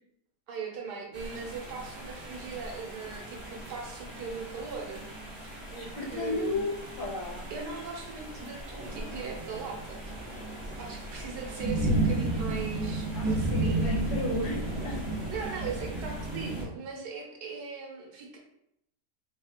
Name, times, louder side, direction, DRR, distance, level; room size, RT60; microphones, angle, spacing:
voice 1, 0.5-5.0 5.4-6.6 7.5-10.0 10.8-13.9 15.3-18.4, right 5 dB, 85° right, 0 dB, 1.4 m, -39 dB
sound 1, 1.1-16.6, right 2 dB, 20° right, 0.8 m, -34 dB
voice 2, 5.7-7.5 13.1-15.0, left 3 dB, 55° left, -4 dB, 1.2 m, -34 dB
3.2 x 2.4 x 4.3 m, 0.78 s
omnidirectional pair, 1.7 m